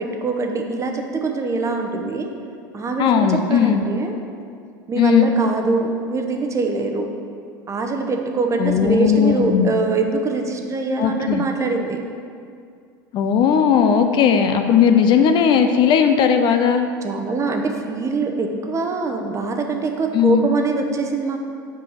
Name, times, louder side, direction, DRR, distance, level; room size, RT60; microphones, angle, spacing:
voice 1, 0.0-2.3 2.7-4.1 4.9-7.1 7.7-12.0 17.0-21.4, right 3 dB, 25° right, 4 dB, 0.9 m, -23 dB
voice 2, 3.0-3.8 4.9-5.3 8.6-9.7 11.0-11.4 13.1-16.9 20.1-20.5, left 7 dB, 45° left, 7 dB, 0.6 m, -17 dB
5.4 x 5.2 x 6.5 m, 2.3 s
hypercardioid pair, 80°, 11 cm